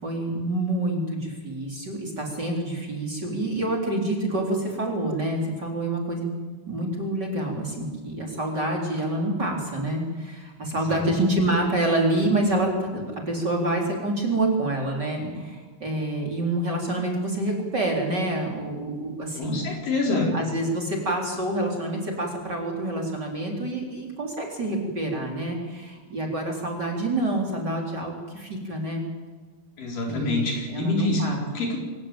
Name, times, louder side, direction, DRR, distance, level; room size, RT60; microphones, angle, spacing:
voice 1, 0.0-6.3 6.7-19.6 20.3-29.1 30.1-31.5, right 1 dB, 30° right, 0 dB, 4.2 m, -27 dB
voice 2, 19.4-20.3 29.8-31.8, left 2 dB, 70° left, 0 dB, 5.9 m, -26 dB
25.5 x 16.0 x 9.0 m, 1.4 s
omnidirectional pair, 4.1 m